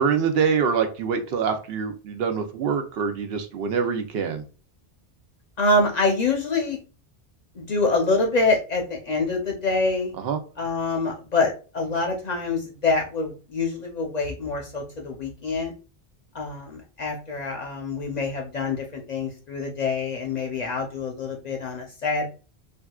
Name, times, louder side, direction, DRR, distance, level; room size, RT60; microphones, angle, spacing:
voice 1, 0.0-4.4 10.2-10.4, right 6 dB, 70° right, 6 dB, 0.8 m, -25 dB
voice 2, 5.6-6.8 7.5-10.1 10.6-15.7 16.3-22.3, left 3 dB, 50° left, 2 dB, 0.6 m, -25 dB
3.5 x 2.3 x 2.2 m, 0.35 s
omnidirectional pair, 1.1 m